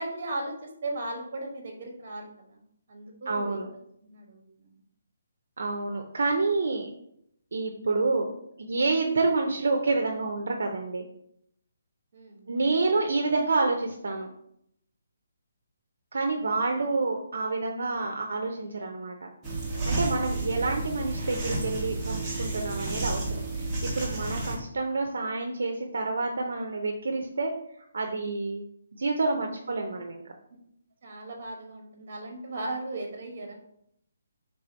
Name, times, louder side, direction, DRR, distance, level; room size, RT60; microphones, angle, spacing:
voice 1, 0.0-2.6 2.9-3.6 4.0-4.8 12.1-12.9 13.3-13.4 29.4-29.5 31.0-33.5, right 2 dB, 40° right, 2 dB, 1.0 m, -37 dB
voice 2, 3.3-3.7 5.6-6.9 7.5-8.3 8.6-11.1 12.5-14.3 16.1-19.3 19.9-27.5 27.9-28.6 29.0-30.2, right 3 dB, 70° right, 3 dB, 0.5 m, -28 dB
sound 1, 19.4-24.6, right 2 dB, 5° right, 0.7 m, -31 dB
3.2 x 2.7 x 4.3 m, 0.73 s
hypercardioid pair, 175°, 0 cm